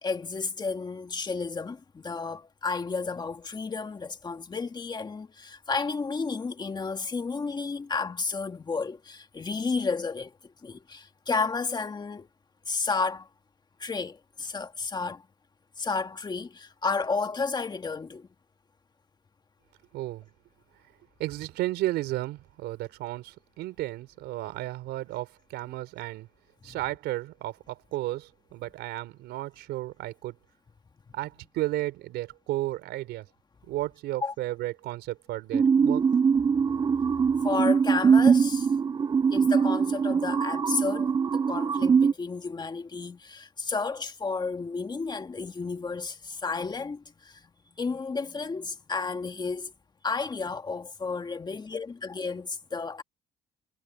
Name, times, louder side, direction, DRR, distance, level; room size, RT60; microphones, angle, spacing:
voice 1, 0.0-12.3 12.7-13.3 13.8-15.3 15.8-18.3 26.6-26.8 34.2-34.3 37.3-38.7 39.3-47.4 47.8-49.7 50.0-53.0, left 4 dB, 25° left, 2.0 m, -32 dB
voice 2, 19.9-20.3 21.2-26.3 26.6-30.4 31.1-33.2 33.7-36.0, right 16 dB, 85° right, 4.2 m, -33 dB
sound 1, 35.5-42.1, right 6 dB, 25° right, 0.4 m, -22 dB
cardioid pair, 110°, 17 cm